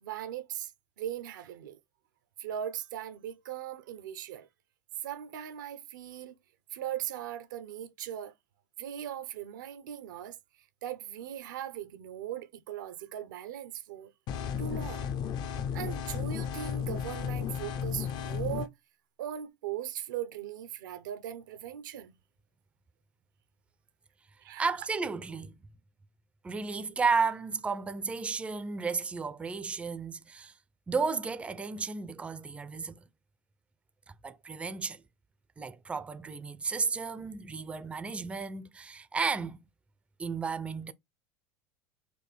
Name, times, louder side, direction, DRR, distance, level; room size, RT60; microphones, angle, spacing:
voice 1, 0.0-0.7 1.0-1.8 2.4-4.5 5.0-6.4 6.7-8.3 8.8-10.4 10.8-14.1 14.6-15.1 15.7-18.7 19.2-22.1 24.4-24.7, right 10 dB, 90° right, 0.7 m, -39 dB
sound 1, 14.3-18.7, left 8 dB, 45° left, 0.5 m, -34 dB
voice 2, 24.6-25.6 26.4-30.5 30.9-33.0 34.2-35.0 35.6-39.6 40.2-40.9, right 4 dB, 10° right, 0.4 m, -33 dB
4.3 x 2.6 x 3.2 m
supercardioid pair, 120°, 10 cm